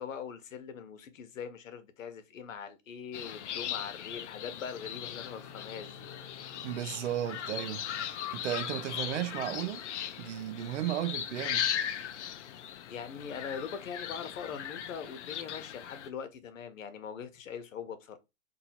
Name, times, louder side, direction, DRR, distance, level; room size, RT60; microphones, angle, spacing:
voice 1, 0.0-6.1 12.9-18.2, left 7 dB, 85° left, 1.0 m, -42 dB
sound 1, 3.1-16.1, left 10 dB, 65° left, 0.5 m, -38 dB
Bowed string instrument, 4.7-8.4 8.7-8.8, left 5 dB, 20° left, 0.8 m, -54 dB
voice 2, 6.6-7.9 8.3-9.8 10.2-11.7, right 12 dB, 65° right, 0.5 m, -34 dB
2.7 x 2.7 x 4.2 m
hypercardioid pair, 175°, 39 cm